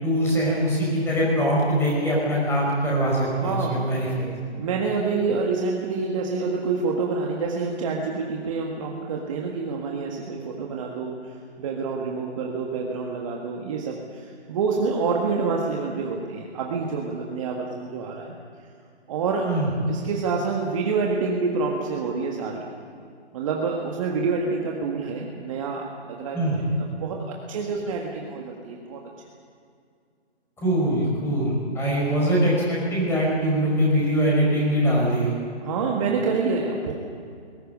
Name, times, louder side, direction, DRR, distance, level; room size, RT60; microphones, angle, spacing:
voice 1, 0.0-4.3 19.4-19.7 26.3-26.6 30.6-35.4, equal, 5° left, -4 dB, 5.3 m, -22 dB
voice 2, 3.3-3.8 4.6-18.3 19.1-19.4 19.9-22.7 23.3-29.3 35.6-36.9, right 4 dB, 30° right, 0 dB, 1.7 m, -27 dB
20.5 x 18.5 x 9.6 m, 2.3 s
figure-of-eight pair, 150°, 34 cm